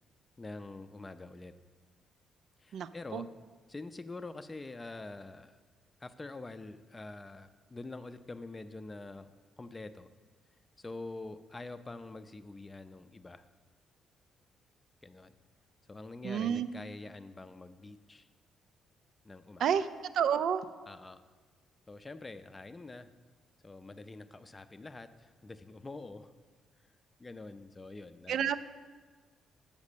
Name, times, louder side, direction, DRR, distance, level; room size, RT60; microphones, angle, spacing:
voice 1, 0.4-1.5 2.6-3.3 3.7-5.6 6.0-10.1 10.8-13.4 15.0-15.3 15.9-18.3 19.2-19.6 20.9-21.2 21.9-23.1 23.6-26.3 27.2-28.5, left 2 dB, 20° left, 10 dB, 0.4 m, -46 dB
voice 2, 2.7-3.3 16.2-16.7 19.6-19.9 20.1-20.7 28.3-28.6, right 8 dB, 70° right, 13 dB, 0.4 m, -29 dB
7.2 x 5.2 x 6.7 m, 1.4 s
cardioid pair, 90°, 0 cm